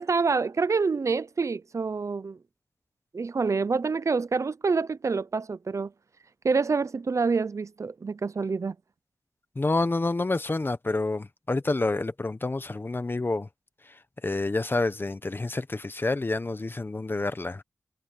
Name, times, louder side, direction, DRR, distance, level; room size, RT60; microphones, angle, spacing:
voice 1, 0.0-2.4 3.1-5.9 6.4-8.8, right 4 dB, 60° right, 0.6 m, -27 dB
voice 2, 9.5-13.5 14.2-17.6, left 2 dB, 35° left, 1.2 m, -28 dB
wide cardioid pair, 60°, 6 cm